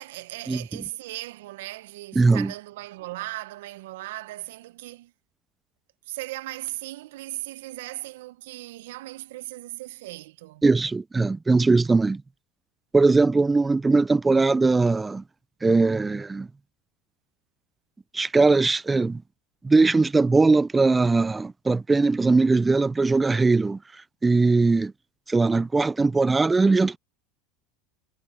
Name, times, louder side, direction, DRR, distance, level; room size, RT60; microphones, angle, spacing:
voice 1, 0.0-5.1 6.1-10.6, right 18 dB, 75° right, 0.9 m, -37 dB
voice 2, 2.2-2.5 10.6-12.2 12.9-15.2 15.6-16.5 18.1-19.2 19.6-23.8 24.2-24.9 25.3-27.0, right 3 dB, 15° right, 0.5 m, -20 dB
hypercardioid pair, 85°, 0 cm